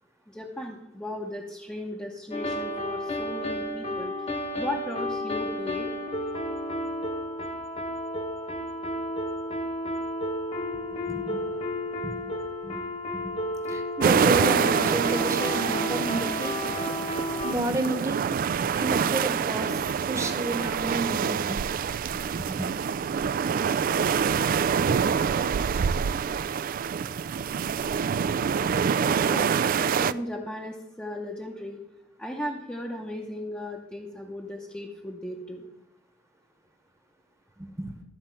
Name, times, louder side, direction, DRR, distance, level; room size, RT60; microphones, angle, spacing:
voice 1, 0.3-4.1 4.6-5.9 29.2-31.8 32.2-35.7, left 1 dB, 5° left, -1 dB, 0.8 m, -36 dB
sound 1, 2.3-17.5, left 1 dB, 35° left, 1.1 m, -32 dB
voice 2, 11.1-11.4 12.0-12.2 12.6-12.8 13.1-13.3 13.7-16.6 17.4-18.2 18.7-19.8 20.1-21.7 22.3-22.7 37.6-37.9, right 1 dB, 15° right, 6 dB, 1.1 m, -31 dB
sound 2, 14.0-30.1, right 7 dB, 50° right, 0.3 m, -26 dB
13.0 x 4.3 x 7.5 m, 0.87 s
head